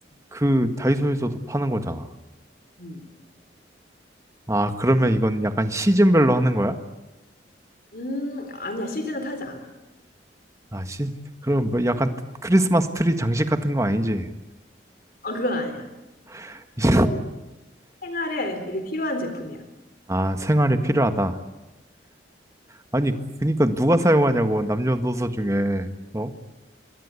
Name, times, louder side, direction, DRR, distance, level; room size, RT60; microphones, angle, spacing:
voice 1, 0.3-2.1 4.5-6.8 10.7-11.1 11.4-12.1 12.4-14.3 16.3-17.1 20.1-21.4 22.9-25.9 26.1-26.3, right 1 dB, 15° right, 8 dB, 1.6 m, -21 dB
voice 2, 7.9-9.7 15.2-15.9 16.9-17.2 18.0-19.6, left 1 dB, 55° left, 7 dB, 3.8 m, -30 dB
27.5 x 22.5 x 8.4 m, 1.0 s
head